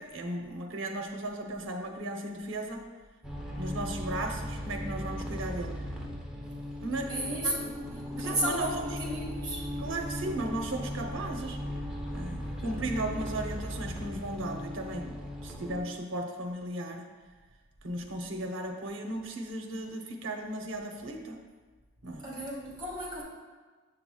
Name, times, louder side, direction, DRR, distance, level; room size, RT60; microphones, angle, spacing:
voice 1, 0.0-2.9 3.6-5.9 6.8-7.5 8.2-9.0 9.8-11.6 12.1-17.1 17.8-21.4 22.0-22.4, right 1 dB, 65° right, 3 dB, 0.7 m, -36 dB
sound 1, 3.2-15.8, equal, 5° right, 0.6 m, -37 dB
voice 2, 7.1-7.7 8.1-9.7 22.2-23.2, right 1 dB, 20° right, -4 dB, 1.8 m, -33 dB
7.6 x 5.8 x 2.3 m, 1.4 s
head